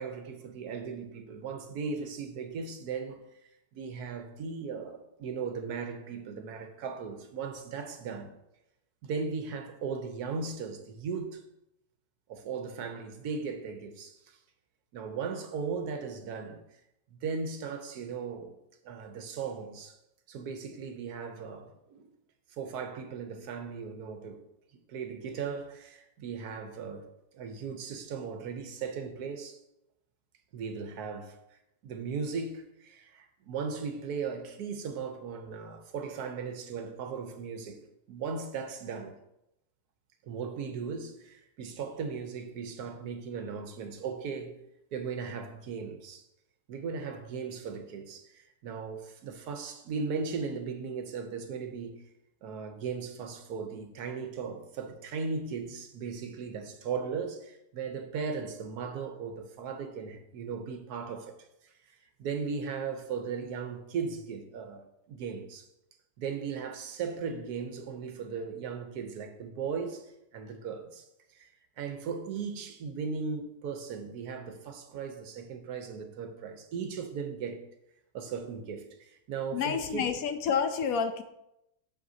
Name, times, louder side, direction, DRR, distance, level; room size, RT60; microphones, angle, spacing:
voice 1, 0.0-3.3 3.7-8.3 9.0-11.4 12.3-14.4 14.9-16.6 17.1-18.5 18.8-20.0 20.3-22.1 22.5-24.4 24.7-27.0 27.3-29.6 30.5-31.4 31.8-37.8 38.1-39.2 40.2-44.6 44.9-46.2 46.7-52.0 52.4-61.4 61.6-61.7 62.2-65.7 66.2-70.1 70.3-71.0 71.3-71.5 71.8-77.6 78.1-80.1, right 5 dB, 75° right, 1.3 m, -37 dB
voice 2, 79.5-81.2, left 6 dB, 70° left, 1.0 m, -29 dB
7.8 x 7.1 x 2.7 m
omnidirectional pair, 1.7 m